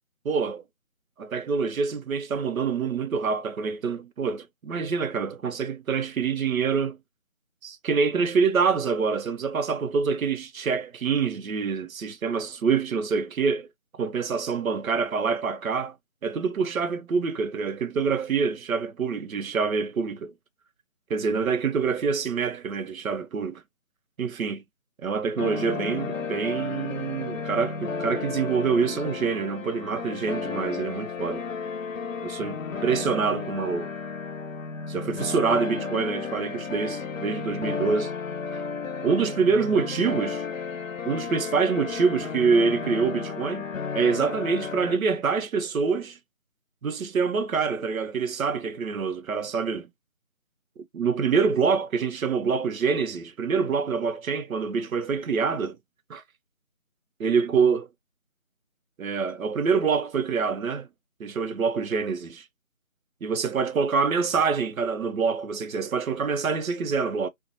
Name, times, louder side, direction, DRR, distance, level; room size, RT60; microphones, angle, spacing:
voice 1, 0.2-0.6 1.2-7.0 7.6-13.7 14.0-15.9 16.2-20.3 21.1-23.6 24.2-24.6 25.0-31.4 32.2-33.9 34.9-38.1 39.0-40.5 41.0-43.7 43.9-46.2 46.8-49.9 50.9-55.8 56.1-56.2 57.2-57.9 59.0-60.9 61.2-62.4 63.2-67.3, right 5 dB, 90° right, 0.6 m, -26 dB
sound 1, 25.4-45.0, left 5 dB, 75° left, 0.6 m, -33 dB
2.6 x 2.1 x 2.7 m
figure-of-eight pair, 175°, 40 cm